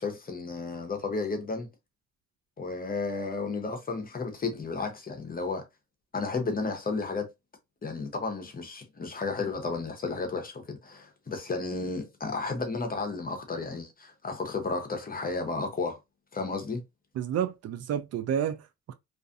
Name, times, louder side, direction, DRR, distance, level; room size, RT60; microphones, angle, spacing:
voice 1, 0.0-1.7 2.6-5.6 6.1-7.3 7.8-16.0 16.3-16.8, left 4 dB, 30° left, 0.8 m, -33 dB
voice 2, 17.2-18.9, right 9 dB, 55° right, 0.4 m, -30 dB
2.5 x 2.3 x 2.5 m
cardioid pair, 90°, 30 cm